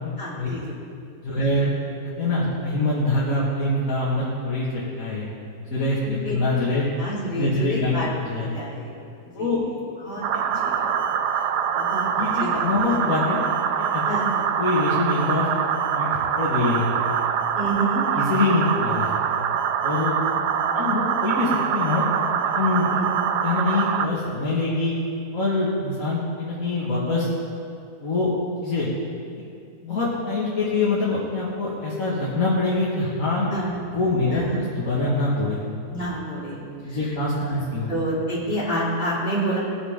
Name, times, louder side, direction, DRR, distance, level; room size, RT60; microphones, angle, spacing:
voice 1, 0.2-0.8 6.0-6.4 7.0-8.1 8.4-8.9 9.4-9.8 10.0-11.1 11.7-12.1 12.4-13.0 14.0-14.4 17.5-18.0 20.3-20.4 20.7-21.1 22.9-23.1 33.5-33.8 34.3-34.7 35.9-37.6 37.9-39.6, right 1 dB, 35° left, -8 dB, 3.2 m, -29 dB
voice 2, 1.2-1.7 2.0-5.3 5.7-6.9 7.3-7.9 8.2-8.6 9.3-9.6 12.2-13.4 13.8-14.0 14.6-15.5 15.9-16.1 16.3-16.9 18.2-19.1 19.8-20.2 20.7-22.0 22.6-22.9 23.4-25.0 25.3-27.3 28.0-28.3 28.6-28.9 29.8-33.5 33.9-35.6 36.8-37.9, left 2 dB, 55° left, -8 dB, 2.4 m, -24 dB
sound 1, 10.2-24.1, right 8 dB, 90° right, 1.3 m, -24 dB
18.5 x 8.9 x 5.1 m, 2.4 s
omnidirectional pair, 1.7 m